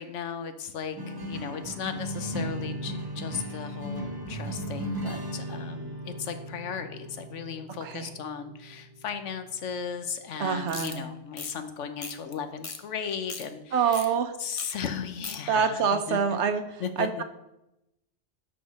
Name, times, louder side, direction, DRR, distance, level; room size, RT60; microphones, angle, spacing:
voice 1, 0.0-14.1 14.4-15.8 16.1-16.4 16.8-17.2, left 7 dB, 90° left, 9 dB, 1.2 m, -36 dB
sound 1, 1.0-9.6, right 1 dB, 20° right, 0.7 m, -36 dB
voice 2, 7.8-8.1 10.4-11.1 13.7-14.3 15.5-17.2, right 6 dB, 75° right, 8 dB, 1.0 m, -26 dB
sound 2, 10.7-11.0 11.3-11.5 12.0-12.3 12.6-12.8 13.1-13.5 13.9-14.1 14.6-14.7 15.0-15.4, left 4 dB, 35° left, 0.7 m, -37 dB
6.2 x 6.1 x 6.2 m, 0.88 s
omnidirectional pair, 1.2 m